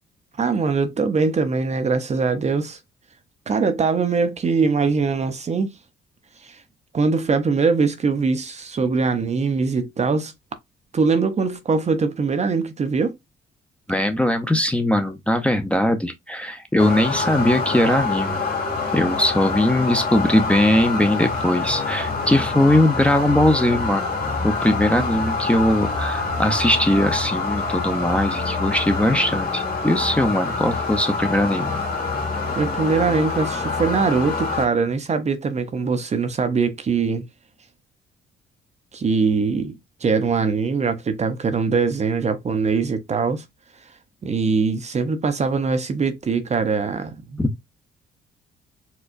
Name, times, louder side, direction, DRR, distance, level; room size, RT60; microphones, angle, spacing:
voice 1, 0.4-2.8 3.5-5.7 6.4-6.6 6.9-10.3 10.9-13.1 32.5-37.3 38.9-39.8 40.0-43.4 44.2-47.4, right 4 dB, 35° right, 0.6 m, -22 dB
voice 2, 13.9-18.4 18.9-24.1 24.4-31.7 47.4-47.5, left 1 dB, 5° left, 0.5 m, -20 dB
sound 1, 16.8-34.7, left 4 dB, 50° left, 2.2 m, -26 dB
4.4 x 2.2 x 2.4 m
cardioid pair, 90°, 20 cm